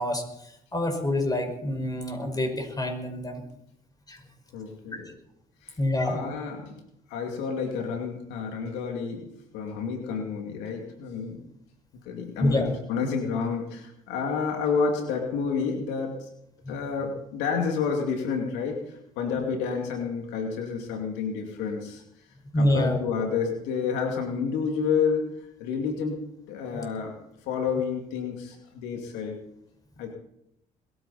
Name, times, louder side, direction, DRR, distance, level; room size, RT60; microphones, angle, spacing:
voice 1, 0.0-3.4 4.1-4.2 4.9-5.0 5.8-6.2 12.4-12.7 16.6-16.7 22.5-23.0 26.7-26.9, left 1 dB, 20° left, 4 dB, 5.6 m, -27 dB
voice 2, 4.5-5.1 5.6-5.8 6.0-6.7 7.1-9.3 9.5-11.4 12.1-16.3 16.7-22.0 22.6-25.3 25.6-27.2 27.5-29.4 30.0-30.1, left 5 dB, 85° left, 2 dB, 2.5 m, -29 dB
21.5 x 14.5 x 4.3 m, 0.76 s
supercardioid pair, 70°, 17 cm